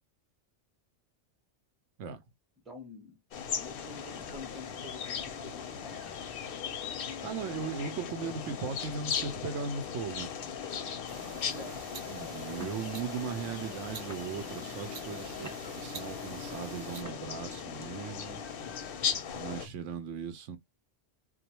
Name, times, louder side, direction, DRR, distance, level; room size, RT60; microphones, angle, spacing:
voice 1, 2.6-3.2 3.6-6.1 11.4-11.9, left 3 dB, ahead, 0.6 m, -48 dB
sound 1, 3.3-19.7, left 7 dB, 60° left, 0.7 m, -38 dB
voice 2, 7.2-10.3 12.1-18.4 19.3-20.6, right 6 dB, 85° right, 0.9 m, -38 dB
sound 2, 11.1-17.0, right 6 dB, 60° right, 0.7 m, -48 dB
sound 3, 12.6-13.0 13.6-13.8 14.1-14.6 15.1-15.9 17.0-17.5, right 1 dB, 15° right, 1.0 m, -48 dB
2.4 x 2.1 x 2.8 m
omnidirectional pair, 1.2 m